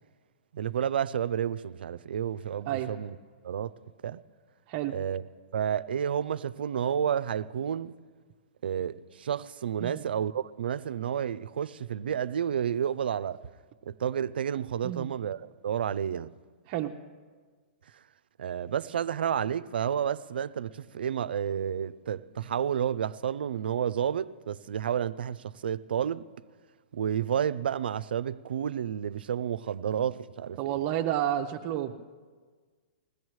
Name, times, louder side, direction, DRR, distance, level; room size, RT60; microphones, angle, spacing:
voice 1, 0.5-3.2 3.4-3.7 4.0-4.2 4.9-5.2 5.5-7.9 8.6-13.4 13.9-16.3 18.4-26.2 26.9-30.8, right 8 dB, 80° right, 0.5 m, -30 dB
voice 2, 30.6-31.9, right 12 dB, 40° right, 0.7 m, -30 dB
21.0 x 16.0 x 3.1 m
hypercardioid pair, 140°, 5 cm